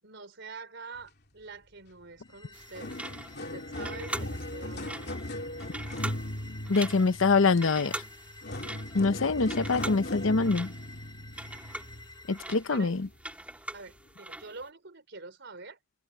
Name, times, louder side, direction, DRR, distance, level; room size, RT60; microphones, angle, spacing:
voice 1, 0.0-2.9 3.4-5.0 12.7-12.9 13.7-15.8, right 4 dB, 65° right, 4.2 m, -46 dB
sound 1, 2.2-2.3 2.6-12.3 12.9-13.1 13.9-14.0, left 1 dB, 55° left, 3.0 m, -38 dB
sound 2, 2.2-12.7, left 3 dB, 20° left, 6.3 m, -51 dB
sound 3, 2.5-14.6, right 1 dB, 5° right, 1.6 m, -42 dB
voice 2, 6.7-7.9 8.9-10.7 12.3-13.1, left 4 dB, 90° left, 0.8 m, -24 dB
head